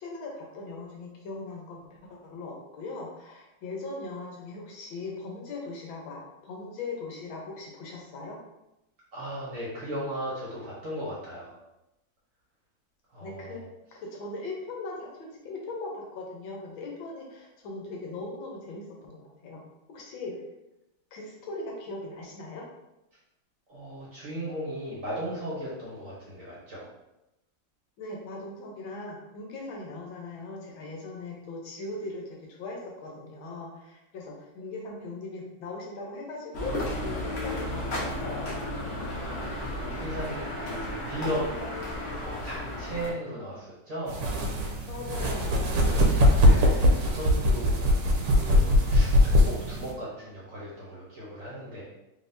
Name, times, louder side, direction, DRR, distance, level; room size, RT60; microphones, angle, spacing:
voice 1, 0.0-1.8 2.1-8.4 13.2-13.6 13.9-19.6 19.9-20.3 21.1-22.6 28.0-38.5 44.9-46.1, left 3 dB, 75° left, -1 dB, 1.6 m, -39 dB
voice 2, 9.1-11.5 13.1-13.6 23.7-26.9 39.1-41.7 42.1-44.2 46.4-47.8 48.3-51.8, equal, 50° right, -6 dB, 1.2 m, -36 dB
sound 1, 36.5-43.1, left 1 dB, 45° left, 0.9 m, -33 dB
sound 2, 44.1-49.9, left 1 dB, 70° right, 1.2 m, -21 dB
3.8 x 3.4 x 2.6 m, 0.92 s
omnidirectional pair, 2.2 m